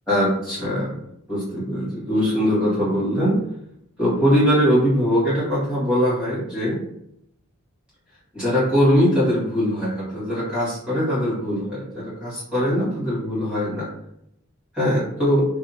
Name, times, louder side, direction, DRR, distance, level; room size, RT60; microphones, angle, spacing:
voice 1, 0.1-1.0 1.3-3.4 4.0-6.8 8.3-13.9 14.7-15.4, equal, 5° right, -11 dB, 1.5 m, -21 dB
2.8 x 2.3 x 2.6 m, 0.76 s
head